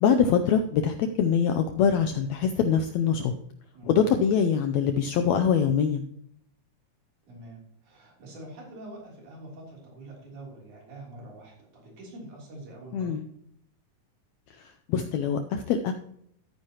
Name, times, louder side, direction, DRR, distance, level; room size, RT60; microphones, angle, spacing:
voice 1, 0.0-3.3 3.9-6.0 12.9-13.2 14.9-15.9, left 7 dB, 85° left, 6 dB, 1.6 m, -23 dB
voice 2, 7.3-13.2, right 1 dB, 65° right, -2 dB, 4.7 m, -45 dB
13.5 x 9.4 x 2.9 m, 0.71 s
omnidirectional pair, 3.8 m